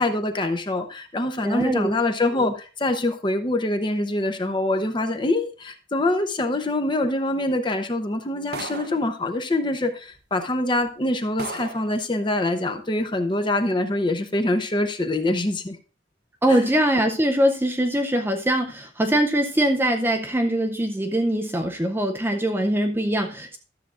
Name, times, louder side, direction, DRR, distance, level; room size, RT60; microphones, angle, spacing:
voice 1, 0.0-15.8 16.5-16.6, left 2 dB, 25° left, 7 dB, 0.7 m, -24 dB
voice 2, 1.4-1.9 2.3-2.5 16.4-23.6, right 1 dB, 10° right, 4 dB, 0.5 m, -22 dB
sound 1, 8.5-9.1 10.1-10.2 10.8-10.9 11.4-11.9, right 3 dB, 50° right, 0.7 m, -35 dB
12.5 x 7.4 x 2.4 m, 0.35 s
head